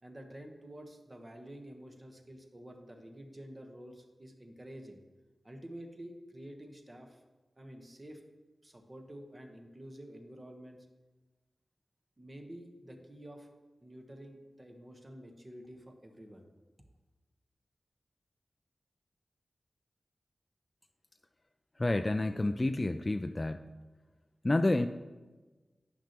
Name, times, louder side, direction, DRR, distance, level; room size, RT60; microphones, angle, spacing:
voice 1, 0.0-5.0 5.4-7.2 7.6-8.2 8.6-10.9 12.2-13.5 13.8-16.4, right 1 dB, 35° right, 4 dB, 1.2 m, -49 dB
voice 2, 21.8-23.7 24.4-24.9, left 2 dB, 35° left, 7 dB, 0.3 m, -29 dB
10.0 x 5.9 x 3.0 m, 1.2 s
cardioid pair, 40°, 0 cm